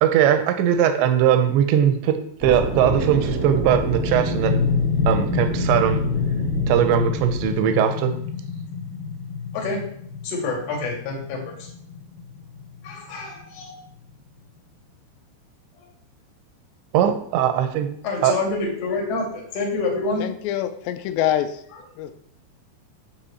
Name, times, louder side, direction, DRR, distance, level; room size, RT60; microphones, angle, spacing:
voice 1, 0.0-4.6 5.1-6.0 6.7-8.1 16.9-17.9 18.2-18.3, right 9 dB, 85° right, 8 dB, 3.1 m, -20 dB
sound 1, 2.4-7.5, right 2 dB, 5° right, 0.9 m, -29 dB
sound 2, 2.6-14.1, left 5 dB, 65° left, 2.1 m, -28 dB
voice 2, 9.5-9.8 10.2-11.7 12.8-13.7 15.8-15.9 18.0-20.3, left 3 dB, 45° left, 0 dB, 2.8 m, -27 dB
voice 3, 20.2-21.6 22.0-22.1, left 11 dB, 85° left, 8 dB, 2.8 m, -25 dB
8.7 x 4.8 x 7.1 m, 0.65 s
omnidirectional pair, 5.2 m